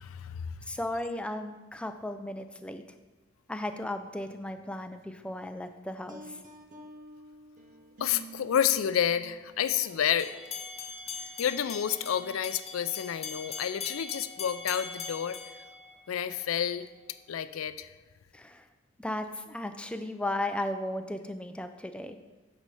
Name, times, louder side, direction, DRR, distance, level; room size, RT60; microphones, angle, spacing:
voice 1, 0.0-0.5 8.0-10.3 11.4-15.4 16.1-16.9 17.3-17.9, left 9 dB, 80° left, 12 dB, 0.4 m, -29 dB
voice 2, 0.7-2.8 3.5-6.4 18.3-18.6 19.0-22.2, left 1 dB, 5° left, 7 dB, 0.4 m, -35 dB
sound 1, 6.1-9.7 10.2-10.5 11.0-11.2 12.0-12.4, right 2 dB, 40° right, 0.8 m, -49 dB
sound 2, 10.2-16.4, left 5 dB, 30° left, 0.8 m, -41 dB
9.4 x 4.1 x 4.8 m, 1.2 s
head